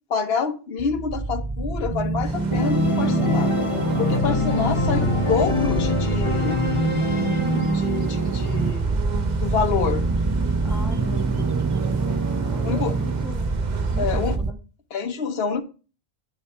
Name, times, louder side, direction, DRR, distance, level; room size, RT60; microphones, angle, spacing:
voice 1, 0.1-3.5 4.0-6.6 7.7-8.9 9.4-10.1 11.0-11.1 12.6-13.0 14.0-14.4 14.9-15.6, left 6 dB, 65° left, 7 dB, 1.2 m, -27 dB
sound 1, 0.8-14.5, right 4 dB, 30° right, 0.3 m, -25 dB
sound 2, 2.2-14.4, right 6 dB, 45° right, 0.8 m, -39 dB
Organ, 2.5-8.2, left 4 dB, 30° left, 0.8 m, -25 dB
voice 2, 10.6-12.2 12.4-13.5 13.9-14.6, equal, ahead, 2 dB, 1.3 m, -39 dB
10.5 x 5.0 x 4.3 m, 0.35 s
omnidirectional pair, 1.1 m